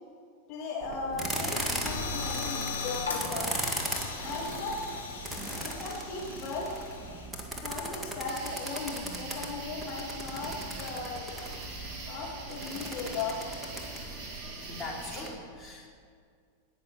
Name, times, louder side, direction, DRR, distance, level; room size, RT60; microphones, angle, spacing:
voice 1, 0.5-3.5 4.1-5.2 5.6-6.7 7.6-11.6 12.0-13.4, left 3 dB, 35° left, -4 dB, 2.8 m, -37 dB
sound 1, 0.8-15.3, right 1 dB, 5° right, 2.0 m, -38 dB
sound 2, 1.8-7.3, left 4 dB, 75° left, 2.6 m, -38 dB
sound 3, 8.3-15.3, right 3 dB, 35° right, 3.8 m, -44 dB
voice 2, 14.6-15.9, left 2 dB, 10° left, -3 dB, 3.3 m, -41 dB
18.0 x 6.5 x 7.9 m, 2.2 s
figure-of-eight pair, 90°, 0 cm